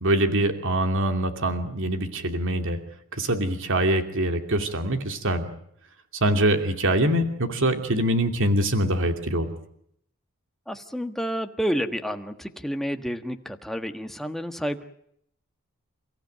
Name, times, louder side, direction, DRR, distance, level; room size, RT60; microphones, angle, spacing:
voice 1, 0.0-2.8 3.2-5.5 6.2-9.5, right 1 dB, 65° right, 6 dB, 2.6 m, -24 dB
voice 2, 10.7-14.8, equal, ahead, 6 dB, 1.5 m, -30 dB
30.0 x 15.5 x 9.3 m, 0.71 s
head